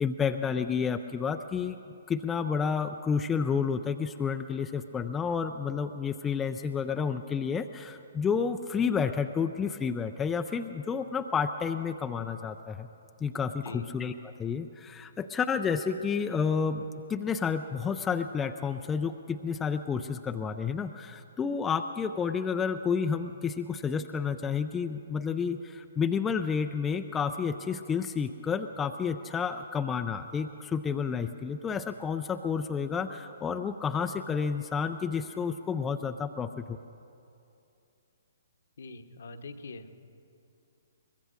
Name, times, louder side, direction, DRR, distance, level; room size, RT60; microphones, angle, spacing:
voice 1, 0.0-1.8 2.1-12.9 13.2-16.8 17.1-36.8, left 6 dB, 15° left, 7 dB, 0.4 m, -30 dB
voice 2, 38.8-39.9, left 3 dB, 60° left, 7 dB, 1.1 m, -43 dB
23.0 x 21.0 x 2.6 m, 2.7 s
figure-of-eight pair, 125°, 0 cm